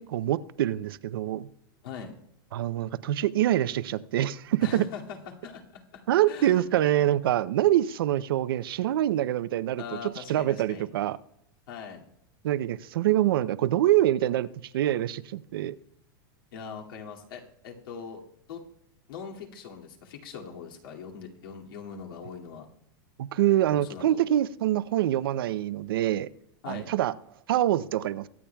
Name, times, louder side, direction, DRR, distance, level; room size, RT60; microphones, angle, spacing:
voice 1, 0.0-1.5 2.5-4.8 6.1-9.8 10.2-11.2 12.4-14.5 14.7-15.8 23.2-26.3 26.7-27.1 27.5-28.3, right 13 dB, 80° right, 15 dB, 0.6 m, -25 dB
voice 2, 1.8-2.1 4.6-6.6 9.8-10.9 11.7-12.0 16.5-18.2 18.5-18.6 19.1-22.7 23.7-24.2 26.6-26.9, left 6 dB, 75° left, 0 dB, 2.3 m, -41 dB
23.5 x 8.6 x 2.3 m, 0.73 s
supercardioid pair, 160°, 12 cm